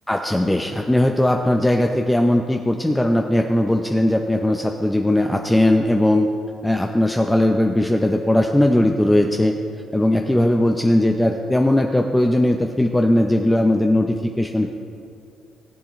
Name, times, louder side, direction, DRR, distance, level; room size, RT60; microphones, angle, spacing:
voice 1, 0.1-6.3 6.6-9.6 9.9-14.7, left 1 dB, 10° left, 3 dB, 0.6 m, -19 dB
18.5 x 7.6 x 3.1 m, 2.4 s
cardioid pair, 90°, 0 cm